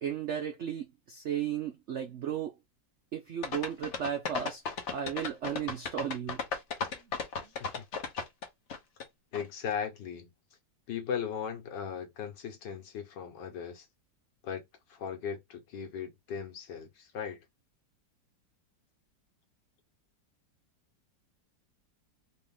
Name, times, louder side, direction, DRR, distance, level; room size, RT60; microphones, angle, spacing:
voice 1, 0.0-2.5 3.1-4.6 4.9-6.4, right 9 dB, 70° right, 0.6 m, -35 dB
sound 1, 3.4-9.0 9.3-9.4, left 5 dB, 50° left, 0.9 m, -35 dB
voice 2, 9.3-10.3 10.9-13.9 14.4-17.4, left 7 dB, 70° left, 1.7 m, -38 dB
4.0 x 2.5 x 3.6 m
omnidirectional pair, 2.0 m